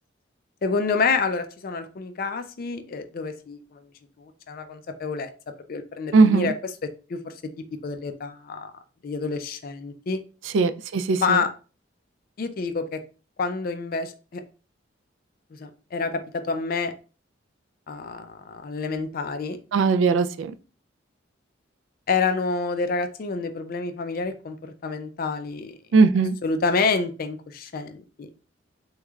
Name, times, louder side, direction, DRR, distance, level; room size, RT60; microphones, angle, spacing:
voice 1, 0.6-3.8 4.2-5.3 5.7-6.5 7.1-7.3 7.8-8.7 9.0-10.2 11.2-11.5 12.4-13.0 13.4-14.4 15.5-16.9 17.9-19.6 22.1-25.8 26.4-28.3, left 4 dB, 50° left, 0.4 m, -28 dB
voice 2, 6.1-6.5 10.5-11.4 19.7-20.5 25.9-26.4, right 4 dB, 70° right, 0.3 m, -19 dB
3.5 x 3.1 x 2.3 m
head